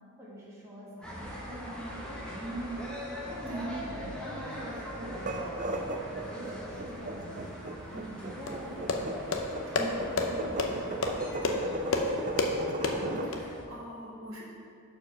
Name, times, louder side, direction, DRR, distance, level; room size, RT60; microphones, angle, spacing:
voice 1, 0.2-2.9 3.2-5.2 5.6-6.0 6.3-7.6 7.9-9.1 9.8-11.7, right 1 dB, 10° right, -9 dB, 1.6 m, -42 dB
sound 1, 1.0-13.6, equal, 5° left, 1.0 m, -42 dB
sound 2, 5.1-13.3, right 2 dB, 35° right, 0.4 m, -36 dB
sound 3, 8.5-13.4, left 3 dB, 60° left, 0.6 m, -31 dB
voice 2, 12.8-14.4, left 1 dB, 65° right, -5 dB, 1.7 m, -43 dB
6.7 x 4.7 x 5.7 m, 2.3 s
head